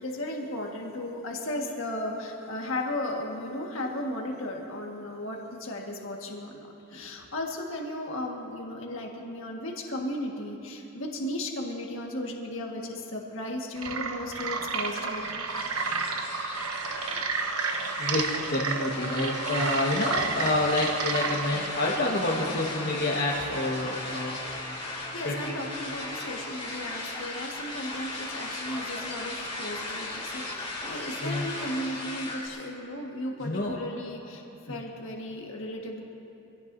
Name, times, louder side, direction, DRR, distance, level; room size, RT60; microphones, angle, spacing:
voice 1, 0.0-15.4 25.1-34.4 34.7-36.0, left 1 dB, 65° left, 0 dB, 1.7 m, -35 dB
sound 1, 13.8-21.7, right 5 dB, 90° right, 1.1 m, -31 dB
sound 2, 14.8-32.5, left 2 dB, 25° left, 3.0 m, -37 dB
voice 2, 18.0-24.4 25.2-25.6 31.2-31.5 33.4-33.8 34.7-34.8, left 2 dB, 50° left, -5 dB, 1.5 m, -28 dB
25.5 x 17.0 x 2.7 m, 3.0 s
head